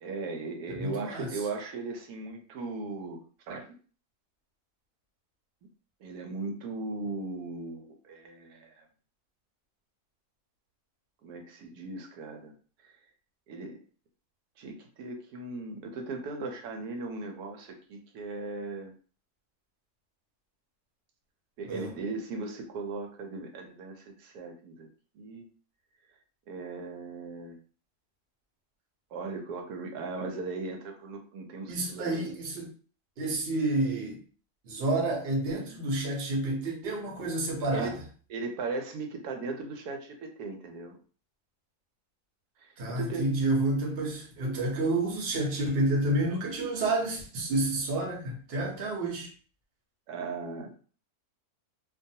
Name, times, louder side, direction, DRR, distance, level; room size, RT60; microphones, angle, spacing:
voice 1, 0.0-3.2 3.5-3.7 6.0-8.8 11.2-12.5 13.5-13.8 14.6-18.9 21.6-24.9 25.2-25.5 26.5-27.6 29.1-32.2 37.7-38.0 38.3-41.0 42.6-43.3 50.1-50.8, right 3 dB, 90° right, 1.1 m, -38 dB
voice 2, 0.7-1.3 21.7-21.9 31.7-32.7 33.2-34.2 34.6-37.9 42.8-49.3, right 2 dB, 50° right, 0.9 m, -29 dB
2.5 x 2.3 x 2.7 m
omnidirectional pair, 1.6 m